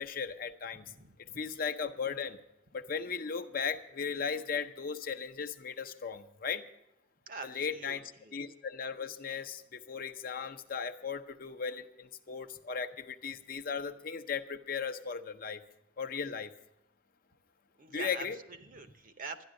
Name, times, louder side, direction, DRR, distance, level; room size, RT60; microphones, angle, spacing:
voice 1, 0.0-0.8 1.4-2.4 2.7-6.6 7.4-8.0 8.3-15.6 16.0-16.5 17.9-18.4, left 6 dB, 50° left, 8 dB, 0.7 m, -37 dB
voice 2, 0.8-1.5 7.3-8.4 17.8-19.4, right 4 dB, 45° right, 9 dB, 0.9 m, -45 dB
12.5 x 10.5 x 6.4 m, 0.81 s
head